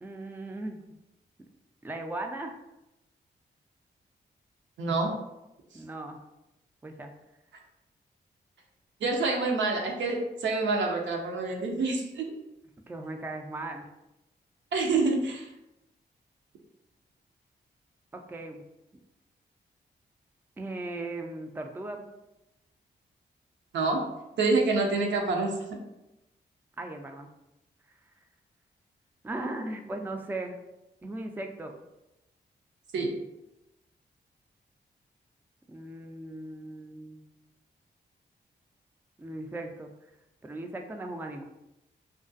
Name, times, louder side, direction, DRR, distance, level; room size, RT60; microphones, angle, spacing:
voice 1, 0.0-0.8 1.8-2.6 5.7-6.2 6.8-7.1 12.9-13.8 18.1-18.6 20.6-22.0 26.8-27.3 29.2-30.6 31.0-31.7 35.7-37.2 39.2-39.9 40.4-41.4, right 2 dB, 10° right, 4 dB, 0.3 m, -37 dB
voice 2, 4.8-5.1 9.0-12.3 14.7-15.5 23.7-24.0 24.4-25.5 32.9-33.1, right 3 dB, 80° right, 1 dB, 0.5 m, -27 dB
2.4 x 2.2 x 2.5 m, 0.91 s
supercardioid pair, 45°, 19 cm